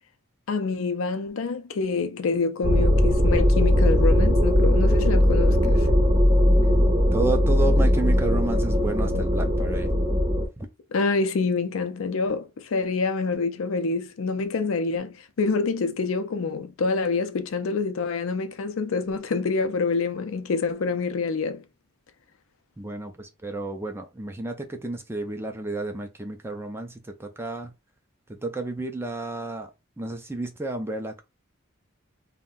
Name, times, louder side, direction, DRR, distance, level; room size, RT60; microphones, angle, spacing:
voice 1, 0.5-5.9 10.9-21.6, left 4 dB, 80° left, 0.5 m, -27 dB
sound 1, 2.6-10.5, equal, 30° right, 0.9 m, -19 dB
voice 2, 7.1-9.9 10.6-10.7 22.8-27.7 28.3-29.7 30.0-31.2, right 2 dB, 10° right, 0.4 m, -31 dB
2.6 x 2.1 x 3.7 m
head